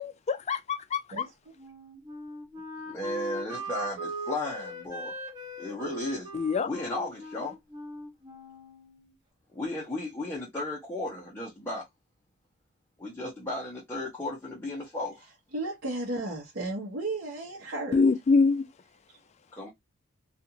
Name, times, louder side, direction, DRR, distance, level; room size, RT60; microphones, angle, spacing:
voice 1, 0.0-1.3 6.3-6.7 17.9-18.7, left 4 dB, 30° left, 0.3 m, -25 dB
voice 2, 1.1-1.5 15.5-18.0, right 2 dB, 55° right, 1.0 m, -34 dB
Wind instrument woodwind instrument, 1.6-9.1, equal, 20° right, 1.1 m, -40 dB
voice 3, 2.9-5.2 5.6-6.3 6.6-7.6 9.5-11.8 13.0-15.3 19.5-19.7, left 1 dB, 10° left, 0.8 m, -35 dB
2.5 x 2.4 x 2.8 m
head